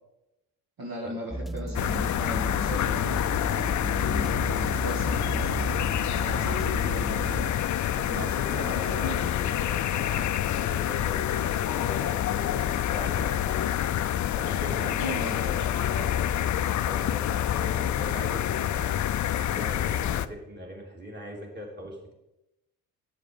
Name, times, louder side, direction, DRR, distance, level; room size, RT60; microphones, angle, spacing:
voice 1, 0.8-3.2 3.8-5.7 6.1-9.4 14.8-15.5, right 1 dB, 55° right, -2 dB, 2.1 m, -38 dB
sound 1, 1.3-7.5, right 1 dB, ahead, 0.4 m, -33 dB
sound 2, 1.7-20.3, left 11 dB, 45° left, 0.5 m, -27 dB
voice 2, 8.1-13.8 14.4-18.9 19.3-22.1, equal, 25° right, -1 dB, 3.3 m, -40 dB
8.9 x 6.6 x 5.3 m, 0.92 s
supercardioid pair, 60°, 41 cm